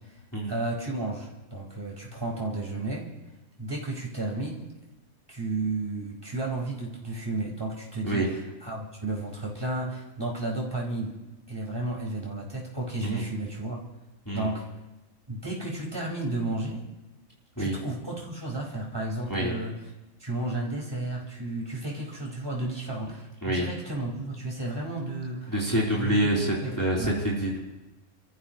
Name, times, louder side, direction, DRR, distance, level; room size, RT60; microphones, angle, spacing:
voice 1, 0.5-3.1 3.6-4.7 5.3-8.2 8.6-11.1 11.5-13.8 14.3-14.6 15.3-16.9 17.6-19.8 20.2-25.5 25.9-26.2 26.6-27.1, right 2 dB, 15° right, -3 dB, 4.9 m, -32 dB
voice 2, 25.5-27.6, right 1 dB, 15° left, -5 dB, 3.3 m, -26 dB
29.5 x 14.5 x 3.0 m, 1.0 s
omnidirectional pair, 1.5 m